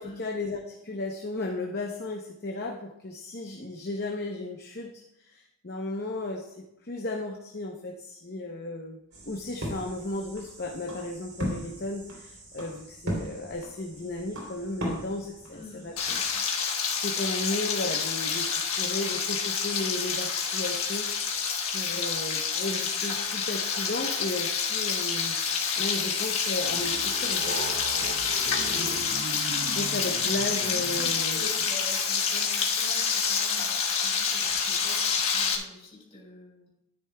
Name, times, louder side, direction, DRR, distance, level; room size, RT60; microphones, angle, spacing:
voice 1, 0.0-15.9 17.0-21.3 21.7-25.4 25.8-27.6 28.7-29.0 29.7-31.4, left 2 dB, 45° left, 0 dB, 0.8 m, -35 dB
sound 1, 9.1-16.4, equal, 80° right, 3.4 m, -38 dB
voice 2, 15.5-16.4 28.4-28.9 31.3-36.7, left 1 dB, 30° left, -3 dB, 3.8 m, -46 dB
Frying (food), 16.0-35.5, left 6 dB, 75° left, 1.4 m, -28 dB
sound 2, 26.7-31.5, right 3 dB, 45° right, 0.5 m, -39 dB
13.0 x 9.7 x 2.3 m, 0.84 s
head